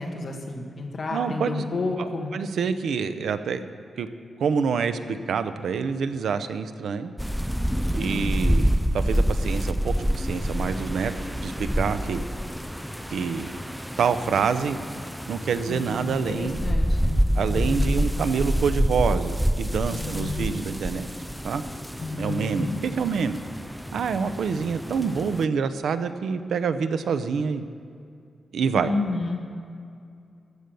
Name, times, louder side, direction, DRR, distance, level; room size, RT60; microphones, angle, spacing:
voice 1, 0.0-2.3 8.1-8.6 15.7-18.0 19.9-20.5 22.0-22.8 28.7-29.4, left 3 dB, 45° left, 1 dB, 1.9 m, -31 dB
voice 2, 1.1-1.6 2.0-2.1 2.3-3.6 4.0-4.1 4.4-7.1 7.9-11.1 11.4-12.2 13.1-13.5 14.0-14.8 15.3-16.7 17.3-21.1 21.4-21.6 22.2-23.4 23.9-27.7 28.5-28.9, right 6 dB, 90° right, 10 dB, 0.7 m, -26 dB
sound 1, 7.2-25.4, equal, ahead, 0.4 m, -27 dB
14.5 x 6.9 x 9.1 m, 2.4 s
wide cardioid pair, 170°, 0 cm